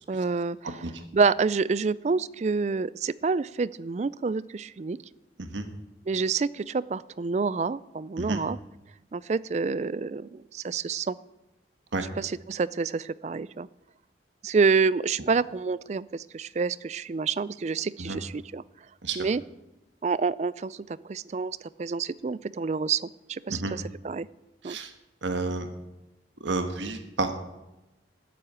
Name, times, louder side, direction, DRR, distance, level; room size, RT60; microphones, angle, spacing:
voice 1, 0.1-0.8 1.1-5.0 6.1-8.6 9.1-11.2 12.2-13.7 14.4-18.6 19.2-19.4 20.0-24.3 24.6-24.8, right 4 dB, 35° right, 19 dB, 0.3 m, -28 dB
voice 2, 25.2-25.7 26.4-27.3, right 3 dB, 85° right, 7 dB, 1.3 m, -30 dB
13.0 x 7.8 x 8.5 m, 0.98 s
head